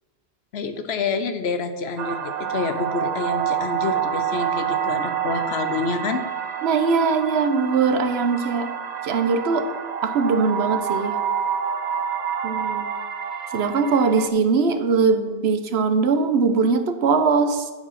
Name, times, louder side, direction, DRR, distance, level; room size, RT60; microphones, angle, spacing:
voice 1, 0.5-6.2, left 4 dB, 75° left, 9 dB, 1.0 m, -28 dB
sound 1, 2.0-14.3, right 8 dB, 55° right, 0.5 m, -28 dB
voice 2, 6.6-8.7 9.0-9.7 10.0-11.2 12.4-12.9 13.5-17.7, right 4 dB, 75° right, 8 dB, 1.0 m, -21 dB
11.0 x 4.7 x 5.8 m, 1.4 s
omnidirectional pair, 1.1 m